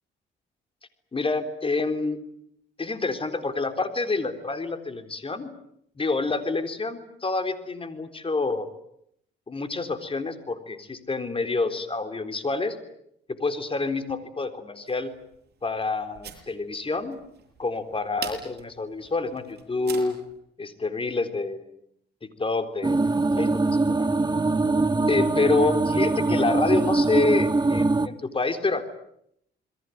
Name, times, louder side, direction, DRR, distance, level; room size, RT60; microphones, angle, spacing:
voice 1, 1.1-2.2 2.8-5.5 6.0-8.7 9.5-12.8 13.3-15.1 15.6-17.2 17.6-20.2 20.6-21.8 22.2-24.1 25.1-28.9, left 3 dB, 25° left, 9 dB, 3.8 m, -27 dB
sound 1, 14.9-20.4, right 7 dB, 55° right, 7.7 m, -43 dB
sound 2, 22.8-28.1, right 3 dB, 20° right, 1.4 m, -23 dB
28.0 x 22.0 x 9.5 m, 0.74 s
cardioid pair, 90°, 20 cm